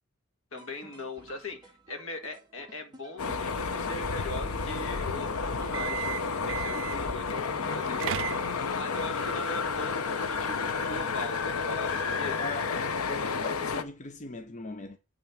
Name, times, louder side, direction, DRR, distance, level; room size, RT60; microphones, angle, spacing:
voice 1, 0.5-12.4, left 2 dB, 65° left, 1.9 m, -40 dB
sound 1, 0.5-12.5, right 1 dB, 20° right, 1.9 m, -55 dB
sound 2, 3.2-13.8, left 5 dB, 85° left, 0.8 m, -31 dB
sound 3, 5.6-7.1 7.7-8.8, right 10 dB, 60° right, 0.4 m, -35 dB
voice 2, 12.4-15.0, left 3 dB, 35° left, 0.6 m, -39 dB
9.2 x 3.9 x 7.1 m
head